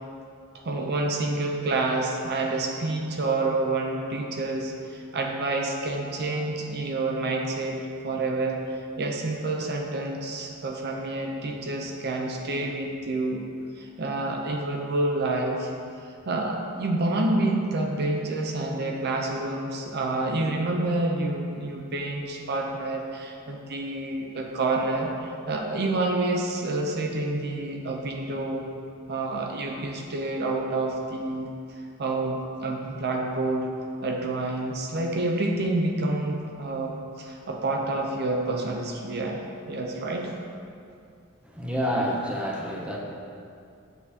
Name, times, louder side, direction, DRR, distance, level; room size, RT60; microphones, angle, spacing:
voice 1, 0.6-13.4 13.8-15.7 16.0-28.7 29.1-31.5 32.0-33.7 34.0-40.3, right 2 dB, 50° right, 1 dB, 0.6 m, -28 dB
voice 2, 41.6-43.0, equal, 5° right, -2 dB, 0.6 m, -28 dB
7.0 x 6.8 x 2.8 m, 2.4 s
head